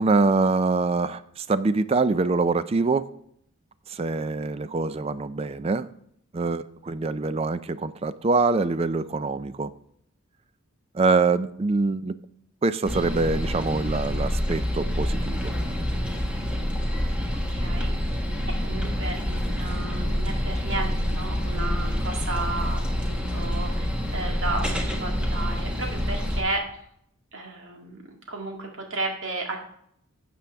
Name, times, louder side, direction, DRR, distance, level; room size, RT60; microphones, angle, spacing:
voice 1, 0.0-3.1 3.9-5.9 6.3-9.7 10.9-12.2 12.6-15.5, right 3 dB, 30° right, 14 dB, 0.3 m, -24 dB
sound 1, 12.8-26.4, equal, 5° right, 1.2 m, -27 dB
voice 2, 17.5-18.2 18.6-26.6 27.3-28.0 28.3-29.6, right 2 dB, 65° right, 1 dB, 2.0 m, -33 dB
12.5 x 7.6 x 3.5 m, 0.71 s
head